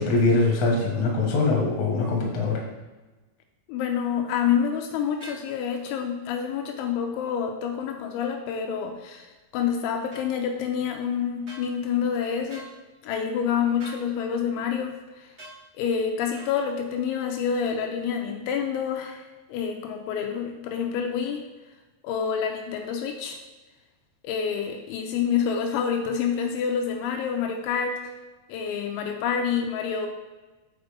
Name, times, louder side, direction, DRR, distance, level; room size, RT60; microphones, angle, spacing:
voice 1, 0.0-2.6, left 3 dB, 60° left, -2 dB, 1.8 m, -22 dB
voice 2, 3.7-12.7 13.0-15.3 15.7-21.5 22.0-23.4 24.2-28.0 28.5-30.1, left 7 dB, 85° left, 3 dB, 3.0 m, -28 dB
sound 1, 5.2-5.5 10.1-10.3 11.5-11.7 12.5-12.7 13.8-14.0 15.4-15.6 16.4-16.5, right 1 dB, 80° right, 0.6 m, -43 dB
8.0 x 4.4 x 5.2 m, 1.2 s
omnidirectional pair, 5.6 m